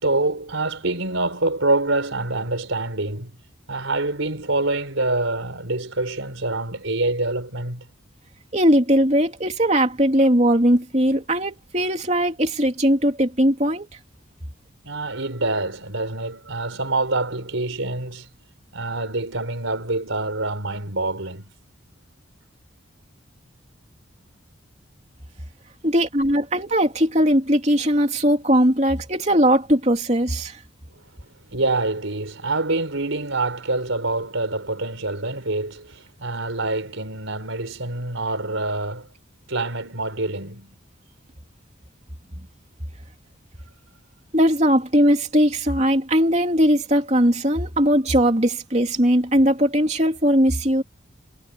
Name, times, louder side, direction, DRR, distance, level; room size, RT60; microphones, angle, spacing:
voice 1, 0.0-3.3 3.7-7.8 14.8-18.3 18.7-21.4 31.5-39.1 39.5-40.7, right 2 dB, 90° right, 4.8 m, -26 dB
voice 2, 8.5-13.9 25.8-30.6 44.3-50.8, equal, 35° right, 3.2 m, -19 dB
head